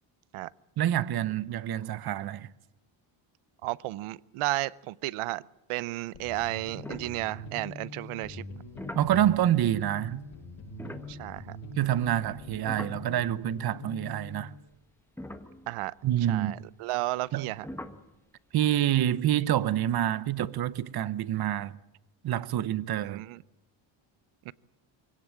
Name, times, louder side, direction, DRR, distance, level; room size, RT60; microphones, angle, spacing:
voice 1, 0.8-2.5 8.9-10.3 11.8-14.5 16.0-16.5 17.3-17.5 18.5-21.8 22.2-23.2, right 11 dB, 50° right, 1.0 m, -27 dB
voice 2, 3.6-5.4 5.7-8.4 11.1-11.6 15.7-15.9 16.3-17.6 23.0-23.4 24.5-24.6, right 18 dB, 85° right, 0.8 m, -33 dB
sound 1, 6.1-14.6, left 2 dB, 65° left, 6.5 m, -44 dB
sound 2, 6.8-7.8 8.5-13.7 14.0-14.1 14.7-14.8 15.2-16.2 17.6-18.1, left 1 dB, 5° left, 1.3 m, -45 dB
23.0 x 17.5 x 8.9 m
cardioid pair, 135°, 49 cm